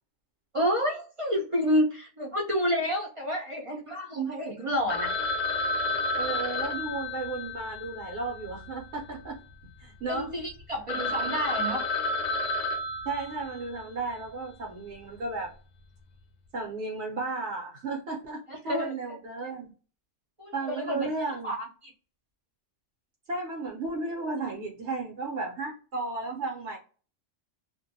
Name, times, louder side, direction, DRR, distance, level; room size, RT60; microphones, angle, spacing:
voice 1, 0.5-5.1 10.1-11.8 18.5-18.9 20.4-20.5 20.8-21.1 21.4-21.7, equal, 40° right, -1 dB, 0.4 m, -29 dB
Telephone, 4.9-9.2 9.5-9.6 10.1-10.2 10.6-10.7 10.9-13.8, left 2 dB, 60° left, 0.5 m, -31 dB
voice 2, 6.2-9.4 9.8-10.3 13.0-15.5 16.5-19.7 20.5-21.5 23.3-26.8, right 3 dB, 65° right, 0 dB, 1.0 m, -34 dB
2.5 x 2.1 x 2.6 m, 0.37 s
omnidirectional pair, 1.2 m